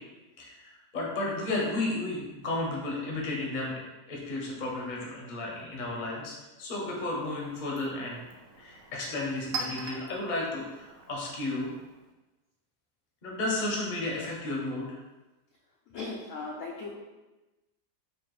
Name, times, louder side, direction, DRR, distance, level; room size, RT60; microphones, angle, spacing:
voice 1, 0.4-6.3 6.6-8.2 8.6-11.7 13.2-15.0, left 2 dB, 40° left, -3 dB, 0.7 m, -33 dB
Chink clink, 6.6-12.1, right 4 dB, 70° right, 0.9 m, -43 dB
voice 2, 15.9-16.9, left 3 dB, 70° left, -2 dB, 0.8 m, -37 dB
4.3 x 2.6 x 3.1 m, 1.1 s
omnidirectional pair, 1.7 m